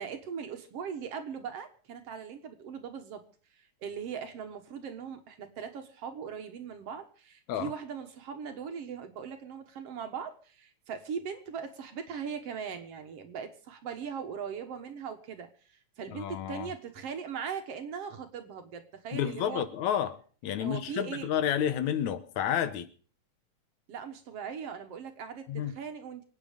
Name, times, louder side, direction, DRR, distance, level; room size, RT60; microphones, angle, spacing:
voice 1, 0.0-3.2 3.6-19.6 20.6-21.3 23.9-26.2, right 7 dB, 60° right, 2.2 m, -40 dB
voice 2, 16.1-16.7 19.1-22.9 25.5-25.7, left 9 dB, 80° left, 2.4 m, -30 dB
25.5 x 9.1 x 5.1 m
omnidirectional pair, 3.3 m